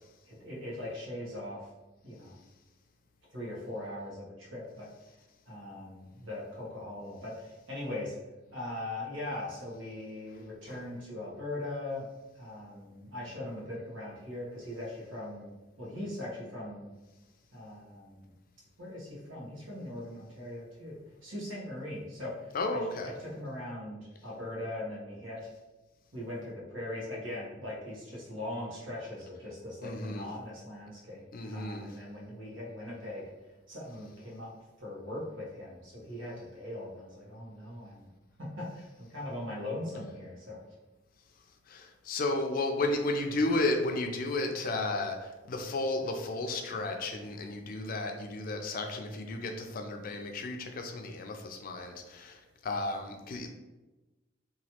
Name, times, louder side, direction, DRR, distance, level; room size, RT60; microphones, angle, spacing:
voice 1, 0.3-1.7 2.0-2.4 3.3-4.9 5.5-8.1 8.5-12.1 12.3-16.9 17.5-18.3 18.8-25.5 26.1-33.2 33.7-34.5 34.8-38.1 38.4-40.6, left 1 dB, 90° right, -4 dB, 1.1 m, -40 dB
voice 2, 22.5-23.1 29.8-30.3 31.3-31.9 41.7-53.5, left 2 dB, 45° left, 4 dB, 0.4 m, -33 dB
3.0 x 2.3 x 2.9 m, 1.1 s
head